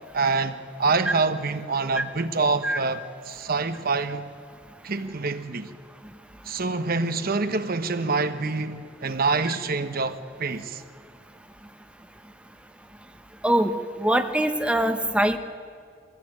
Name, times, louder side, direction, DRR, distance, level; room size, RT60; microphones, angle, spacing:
voice 1, 0.1-4.3 4.8-5.7 6.4-10.8, right 3 dB, 50° right, 1.0 m, -26 dB
voice 2, 14.0-15.4, right 1 dB, 5° right, 0.8 m, -22 dB
22.0 x 15.5 x 9.0 m
head